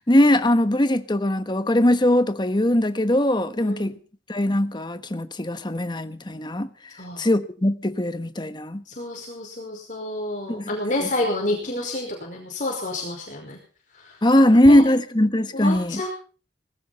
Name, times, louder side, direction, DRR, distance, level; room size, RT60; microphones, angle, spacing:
voice 1, 0.0-4.0 4.3-6.7 7.2-8.8 10.5-10.7 11.0-11.1 14.2-16.0, left 1 dB, 25° left, 1.3 m, -20 dB
voice 2, 3.6-3.9 7.0-7.3 8.9-13.6 13.9-14.2 14.7-14.9 15.5-16.1, left 1 dB, 45° left, 5.2 m, -29 dB
20.0 x 17.0 x 4.2 m
head